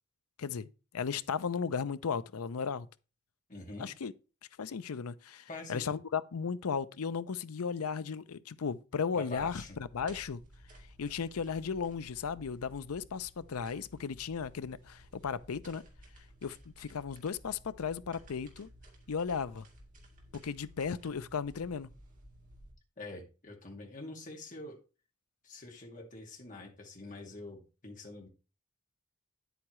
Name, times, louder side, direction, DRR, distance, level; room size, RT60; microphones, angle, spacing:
voice 1, 0.9-2.9 3.8-4.1 4.6-9.6 9.9-10.4 11.0-15.8 16.4-18.7 19.1-19.7 20.3-21.9, left 6 dB, 85° left, 0.5 m, -35 dB
voice 2, 3.5-3.9 5.5-5.9 9.1-9.8 23.0-24.8 25.4-28.3, left 2 dB, 35° left, 2.2 m, -45 dB
sound 1, 9.4-22.7, equal, 35° right, 2.4 m, -56 dB
9.8 x 8.2 x 3.1 m
head